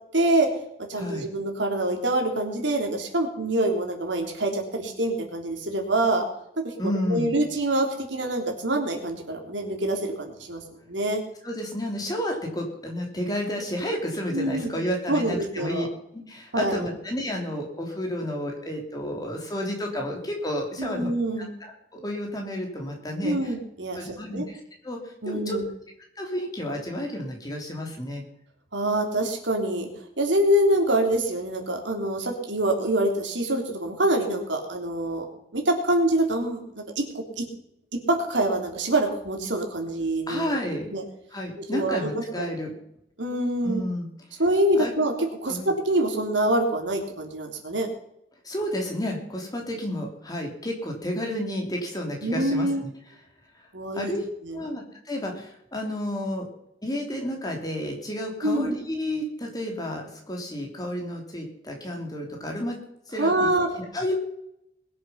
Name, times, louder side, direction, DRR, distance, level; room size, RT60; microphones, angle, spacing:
voice 1, 0.1-0.5 0.9-6.2 6.6-6.7 7.1-11.2 14.3-14.8 15.1-15.9 16.5-16.9 20.8-21.5 23.2-24.5 25.2-25.7 28.7-29.9 30.2-35.2 35.5-37.5 37.9-40.5 40.9-41.0 41.7-42.5 43.2-43.8 44.4-45.1 45.4-47.9 52.2-52.8 53.7-54.2 54.4-54.6 58.4-58.7 63.2-63.7, right 1 dB, 85° right, 3 dB, 3.3 m, -25 dB
voice 2, 0.9-1.3 6.8-7.3 11.4-15.8 16.1-21.1 21.4-23.5 23.9-24.6 24.8-25.6 26.2-28.2 40.3-40.9 41.3-42.7 43.6-44.1 44.7-44.9 45.5-45.7 48.4-52.9 53.9-54.3 54.5-56.5 56.8-62.8 63.1-63.5 63.8-64.1, left 1 dB, 20° left, 1 dB, 3.4 m, -31 dB
21.0 x 7.9 x 5.8 m, 0.78 s
head